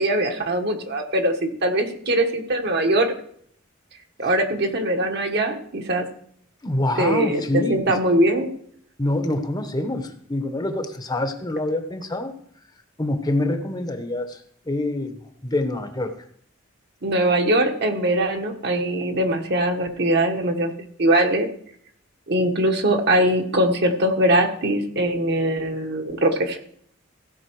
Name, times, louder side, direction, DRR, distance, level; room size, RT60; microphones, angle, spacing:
voice 1, 0.0-3.1 4.2-6.1 7.0-8.5 17.0-20.7 21.0-21.5 22.3-26.6, right 1 dB, 55° right, 4 dB, 1.3 m, -21 dB
voice 2, 6.6-8.0 9.0-12.4 13.0-16.1, left 1 dB, 20° left, 7 dB, 0.8 m, -26 dB
16.0 x 5.3 x 4.6 m, 0.63 s
head